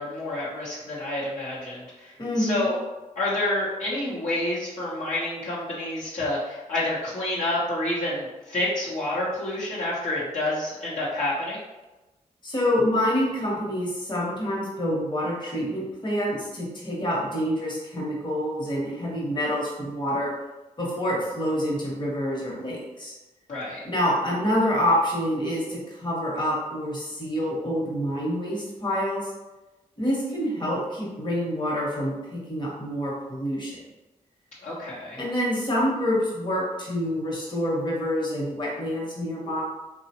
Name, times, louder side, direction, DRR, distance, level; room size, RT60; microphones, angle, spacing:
voice 1, 0.0-2.8 3.2-11.6 23.5-23.8 34.6-35.2, left 1 dB, 55° left, -9 dB, 0.9 m, -28 dB
voice 2, 2.2-2.7 12.4-20.3 20.8-23.1 23.8-29.3 30.0-33.8 35.2-39.6, equal, 30° left, -5 dB, 1.2 m, -27 dB
2.8 x 2.3 x 2.8 m, 1.1 s
cardioid pair, 50°, 15 cm